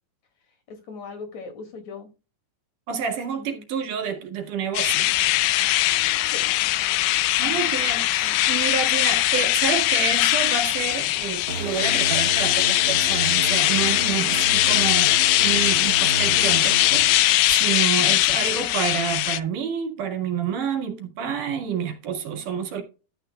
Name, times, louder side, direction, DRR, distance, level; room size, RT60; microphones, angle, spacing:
voice 1, 0.5-2.1 3.3-3.7 6.3-6.5 6.8-7.1 8.2-8.5 18.0-18.3, left 4 dB, 60° left, 3.7 m, -40 dB
voice 2, 2.9-5.1 7.4-22.8, right 7 dB, 80° right, 3.6 m, -29 dB
sound 1, 4.7-19.4, left 16 dB, 90° left, 2.2 m, -21 dB
sound 2, 11.5-18.0, right 4 dB, 45° right, 2.2 m, -33 dB
13.0 x 9.1 x 2.4 m
omnidirectional pair, 3.6 m